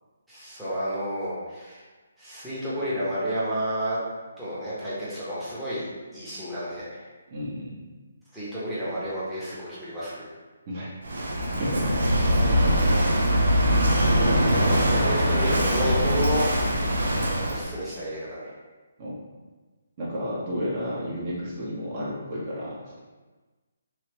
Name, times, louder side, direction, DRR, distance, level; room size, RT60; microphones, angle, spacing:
voice 1, 0.3-1.8 2.2-4.0 4.4-5.8 6.1-7.0 8.3-10.3 14.2-16.4 17.5-18.5, equal, 5° right, -12 dB, 0.9 m, -31 dB
voice 2, 7.3-7.8 10.7-10.9 11.6-11.9 16.9-17.0 19.0-19.2 20.0-23.0, equal, 40° right, -6 dB, 0.9 m, -32 dB
Walk footsteps / Wind / Waves surf, 11.0-17.6, equal, 75° right, 0.6 m, -22 dB
3.3 x 2.8 x 2.9 m, 1.3 s
hypercardioid pair, 150°, 0 cm